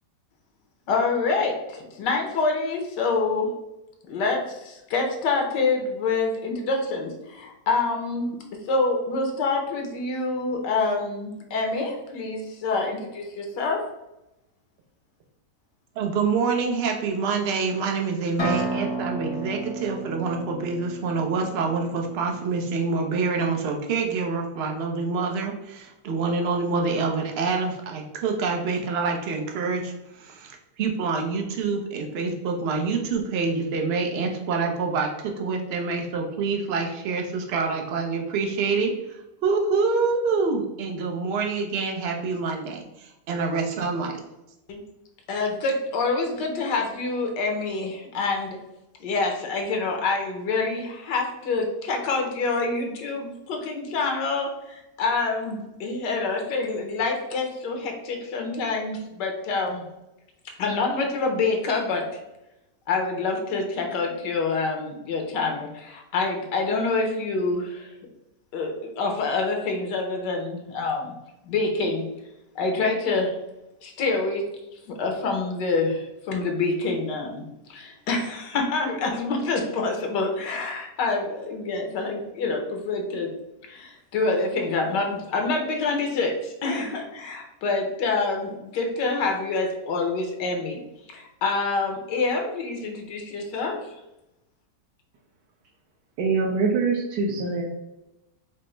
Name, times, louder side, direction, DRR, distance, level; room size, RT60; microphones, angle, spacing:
voice 1, 0.9-3.5 4.1-8.4 8.7-13.8 44.7-44.8 45.3-48.6 49.0-59.8 60.6-62.2 62.9-67.9 68.5-71.1 71.5-72.0 72.5-73.3 73.8-74.4 74.9-77.4 77.7-83.3 83.7-90.8 91.1-93.8, left 3 dB, 85° left, 2 dB, 1.5 m, -26 dB
voice 2, 16.0-44.2, right 4 dB, 55° right, 2 dB, 0.7 m, -26 dB
sound 1, 18.4-22.1, right 3 dB, 25° left, 0.6 m, -31 dB
voice 3, 96.2-97.6, right 4 dB, 80° right, -4 dB, 1.3 m, -24 dB
5.0 x 2.1 x 4.3 m, 0.93 s
omnidirectional pair, 1.8 m